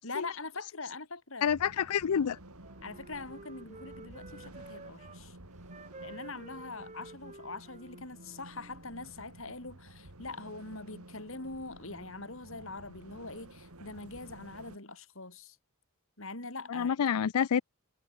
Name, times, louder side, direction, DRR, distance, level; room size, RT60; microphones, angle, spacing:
voice 1, 0.0-1.5 2.8-5.4 6.0-15.6 16.2-17.0, left 3 dB, 60° left, 5.8 m, -43 dB
voice 2, 1.4-2.4 16.7-17.6, left 7 dB, 90° left, 0.4 m, -28 dB
sound 1, 1.5-14.8, right 1 dB, 80° right, 3.9 m, -52 dB
Wind instrument woodwind instrument, 2.1-5.2 5.7-8.8, right 2 dB, 30° right, 5.7 m, -51 dB
head